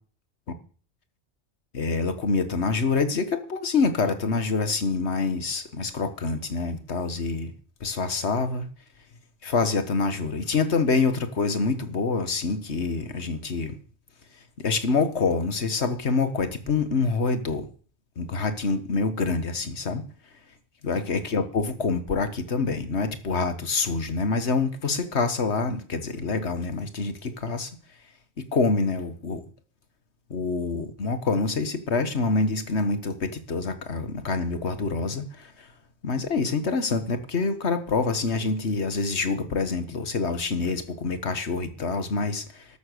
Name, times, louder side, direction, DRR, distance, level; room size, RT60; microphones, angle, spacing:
voice 1, 1.7-7.5 7.8-8.7 9.4-13.7 14.6-17.7 18.2-20.0 20.8-27.7 28.5-29.4 30.3-35.7 36.0-42.7, left 4 dB, 85° left, 1.8 m, -26 dB
13.0 x 11.0 x 6.8 m
omnidirectional pair, 1.1 m